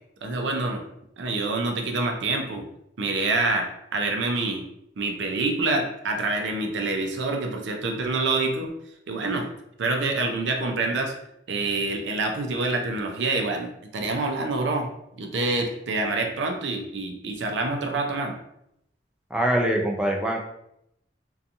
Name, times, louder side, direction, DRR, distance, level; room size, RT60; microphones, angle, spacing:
voice 1, 0.2-0.8 1.2-2.7 3.0-4.7 5.0-8.7 9.1-9.5 9.8-11.1 11.5-14.9 15.2-18.3, right 3 dB, 70° right, 3 dB, 0.5 m, -26 dB
voice 2, 19.3-20.4, right 1 dB, 5° right, -1 dB, 0.4 m, -23 dB
2.7 x 2.3 x 2.5 m, 0.79 s
head